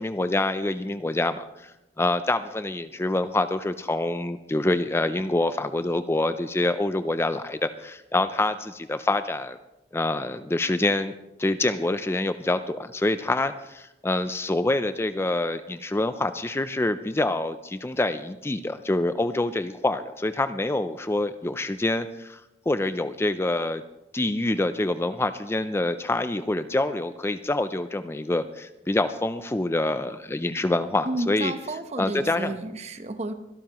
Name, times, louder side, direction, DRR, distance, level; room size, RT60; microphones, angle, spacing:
voice 1, 0.0-1.7 2.0-9.6 9.9-11.1 11.4-22.4 22.7-23.8 24.1-31.5 32.0-32.6, left 2 dB, 15° left, 11 dB, 0.4 m, -26 dB
voice 2, 31.0-33.3, right 2 dB, 40° right, 9 dB, 0.9 m, -31 dB
24.0 x 12.0 x 3.0 m, 0.96 s
head